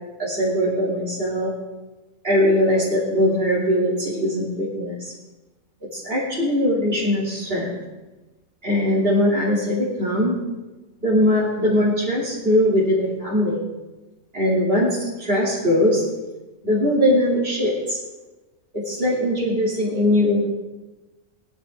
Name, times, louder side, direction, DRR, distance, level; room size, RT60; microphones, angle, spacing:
voice 1, 0.2-1.5 2.2-5.1 5.9-7.7 8.6-10.4 11.0-13.6 14.3-16.0 16.6-18.0 18.7-20.5, left 1 dB, 40° right, -8 dB, 3.4 m, -21 dB
20.5 x 11.5 x 3.8 m, 1.2 s
omnidirectional pair, 1.5 m